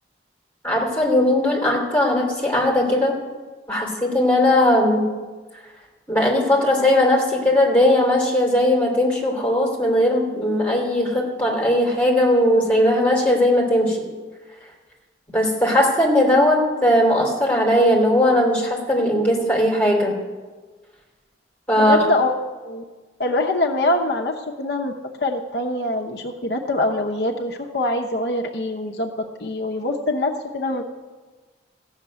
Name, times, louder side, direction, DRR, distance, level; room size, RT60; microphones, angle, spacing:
voice 1, 0.6-3.2 3.7-5.1 6.1-14.0 15.3-20.2 21.7-22.0, left 1 dB, 5° left, -3 dB, 3.1 m, -18 dB
voice 2, 21.8-22.3 22.6-22.8 23.2-24.9 25.2-29.1 29.4-30.8, left 2 dB, 60° left, 2 dB, 0.8 m, -24 dB
15.0 x 6.6 x 9.3 m, 1.4 s
head